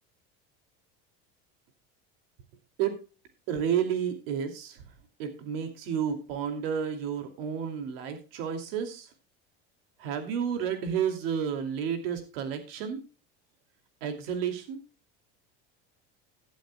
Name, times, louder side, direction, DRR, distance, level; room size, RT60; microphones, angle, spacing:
voice 1, 3.5-4.9 5.2-9.1 10.0-13.0 14.0-14.8, right 8 dB, 85° right, 6 dB, 2.6 m, -31 dB
16.5 x 11.5 x 2.2 m, 0.34 s
cardioid pair, 180°, 29 cm